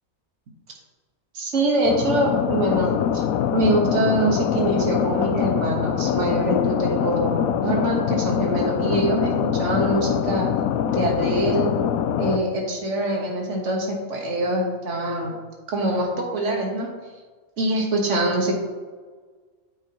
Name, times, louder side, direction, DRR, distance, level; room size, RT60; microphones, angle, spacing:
voice 1, 1.3-3.2 3.5-10.5 10.9-11.7 12.2-15.4 15.7-16.9 17.6-18.5, right 1 dB, 60° right, 0 dB, 1.7 m, -24 dB
sound 1, 1.8-12.4, left 9 dB, 85° left, 1.0 m, -24 dB
9.4 x 7.5 x 3.0 m, 1.4 s
omnidirectional pair, 1.4 m